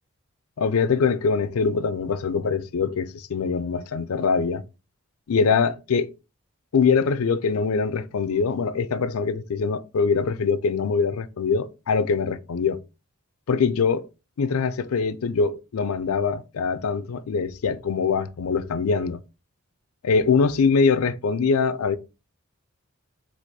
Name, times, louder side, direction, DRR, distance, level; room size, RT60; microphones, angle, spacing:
voice 1, 0.6-4.6 5.3-6.1 6.7-12.8 13.5-14.1 14.4-19.2 20.0-22.0, left 5 dB, 85° left, 0.4 m, -23 dB
4.2 x 2.5 x 4.6 m
head